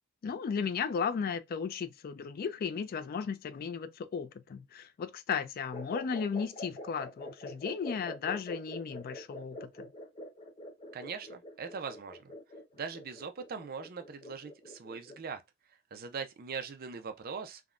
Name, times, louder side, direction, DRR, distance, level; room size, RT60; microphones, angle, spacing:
voice 1, 0.2-9.9, left 6 dB, 45° left, 0.3 m, -35 dB
sound 1, 5.7-15.3, left 1 dB, 25° left, 0.9 m, -45 dB
voice 2, 10.9-12.3 12.8-15.4 15.9-17.6, right 5 dB, 45° right, 0.4 m, -41 dB
3.4 x 2.1 x 2.4 m
head